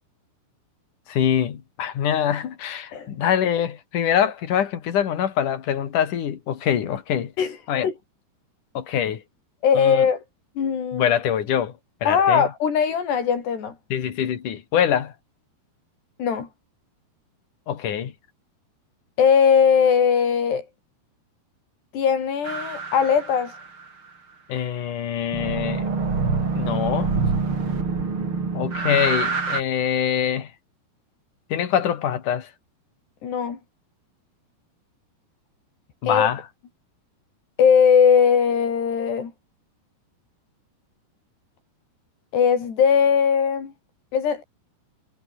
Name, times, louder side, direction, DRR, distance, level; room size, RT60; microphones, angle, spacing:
voice 1, 1.1-7.3 7.7-7.9 8.8-9.2 9.8-10.1 10.9-11.7 12.0-12.5 13.9-15.1 17.7-18.1 24.5-25.8 26.5-27.1 28.5-30.5 31.5-32.5 36.0-36.4, left 9 dB, 55° left, 3.5 m, -24 dB
voice 2, 9.6-10.2 10.6-11.1 12.1-13.7 16.2-16.5 19.2-20.6 21.9-23.6 33.2-33.6 36.0-36.3 37.6-39.3 42.3-43.7 44.1-44.4, left 7 dB, 90° left, 6.4 m, -19 dB
sound 1, 22.4-23.9 25.3-29.6, right 4 dB, 30° right, 4.4 m, -26 dB
omnidirectional pair, 4.7 m